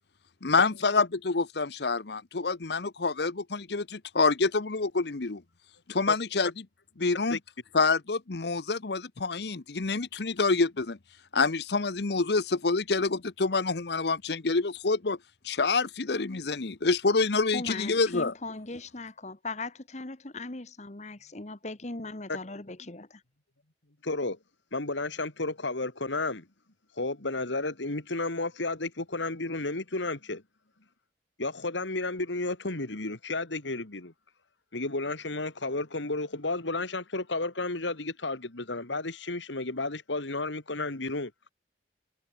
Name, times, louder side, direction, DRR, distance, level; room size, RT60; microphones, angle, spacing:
voice 1, 0.4-5.4 5.9-6.6 7.0-7.4 7.7-11.0 11.3-15.2 15.4-18.3, left 4 dB, 65° left, 0.9 m, -27 dB
voice 2, 17.5-23.2, left 3 dB, 40° left, 1.4 m, -39 dB
voice 3, 24.0-24.4 24.7-26.5 27.0-30.4 31.4-34.1 34.7-41.3, left 2 dB, 85° left, 2.4 m, -32 dB
head